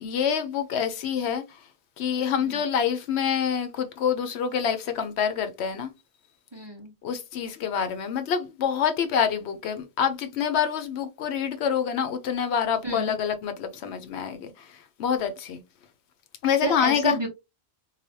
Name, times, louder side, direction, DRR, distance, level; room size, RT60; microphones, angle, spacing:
voice 1, 0.0-1.4 2.0-5.9 7.0-15.6 16.4-17.2, left 7 dB, 75° left, 0.8 m, -26 dB
voice 2, 6.5-6.9 12.8-13.1 16.6-17.3, right 2 dB, 30° right, 0.6 m, -30 dB
3.2 x 2.2 x 2.6 m
omnidirectional pair, 1.2 m